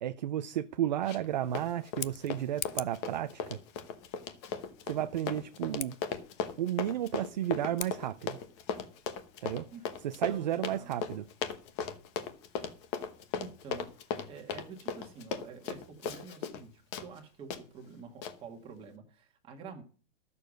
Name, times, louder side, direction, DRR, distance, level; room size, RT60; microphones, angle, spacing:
voice 1, 0.0-3.6 4.9-6.0 6.6-8.4 9.4-9.7 10.0-11.3, right 11 dB, 35° right, 0.5 m, -33 dB
Run, 1.0-1.3 1.6-16.6 16.9-17.1 17.5-17.6 18.2-18.3, left 6 dB, 25° left, 0.9 m, -37 dB
Scissors, 1.8-3.1 5.7-5.9 7.7-8.0, left 12 dB, 65° left, 0.8 m, -40 dB
voice 2, 10.3-11.0 13.3-13.9 14.2-19.8, right 5 dB, 15° right, 1.7 m, -48 dB
12.5 x 6.9 x 6.4 m
hypercardioid pair, 170°, 37 cm